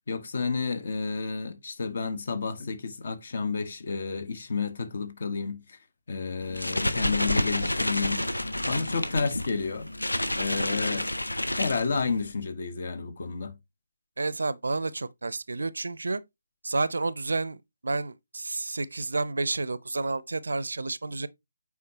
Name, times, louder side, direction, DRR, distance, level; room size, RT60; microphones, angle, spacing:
voice 1, 0.1-5.8 6.1-8.3 8.7-9.9 10.3-11.1 11.6-13.6, left 4 dB, 50° left, 1.2 m, -31 dB
sound 1, 6.4-12.3, left 1 dB, 80° left, 1.0 m, -29 dB
voice 2, 14.2-16.2 16.6-21.3, right 3 dB, 65° right, 0.6 m, -30 dB
8.2 x 4.8 x 2.9 m
figure-of-eight pair, 150°, 0 cm